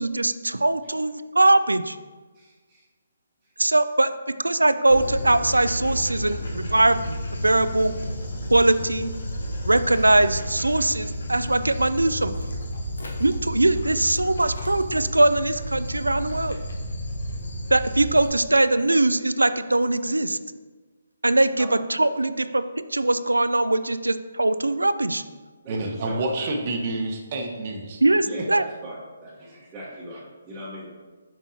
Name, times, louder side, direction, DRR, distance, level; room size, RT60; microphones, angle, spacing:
voice 1, 0.0-2.0 3.6-7.9 8.5-9.1 9.6-12.3 13.2-16.6 17.7-20.4 21.2-22.6 22.9-25.2 28.0-28.6, right 2 dB, 90° right, 12 dB, 0.3 m, -21 dB
voice 2, 2.3-2.8 3.4-3.5 8.0-8.1 12.2-12.3 21.6-21.8 25.6-26.5 28.2-30.9, right 1 dB, 15° right, -11 dB, 1.1 m, -40 dB
Dog, 4.9-18.3, equal, 70° left, 1.1 m, -32 dB
voice 3, 25.7-28.0, right 2 dB, 40° right, 3 dB, 0.9 m, -28 dB
7.3 x 5.3 x 2.8 m, 1.3 s
figure-of-eight pair, 145°, 0 cm